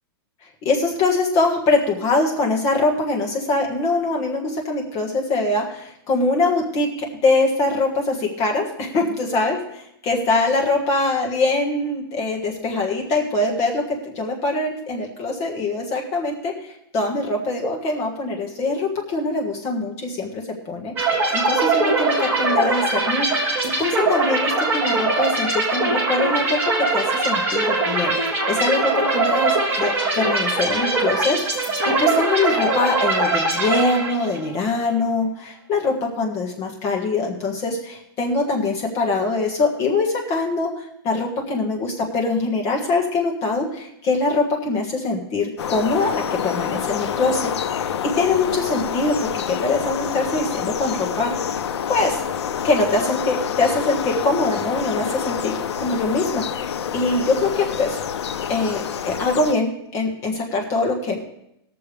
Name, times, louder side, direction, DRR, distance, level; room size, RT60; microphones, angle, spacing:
voice 1, 0.6-23.5 23.8-47.9 48.2-51.3 51.9-52.2 52.6-58.0 58.5-61.2, left 3 dB, 20° left, 0 dB, 1.5 m, -23 dB
sound 1, 21.0-34.5, right 2 dB, 15° right, 1.6 m, -21 dB
sound 2, 45.6-59.5, left 8 dB, 85° left, 0.7 m, -27 dB
20.0 x 6.9 x 3.4 m, 0.78 s
supercardioid pair, 175°, 14 cm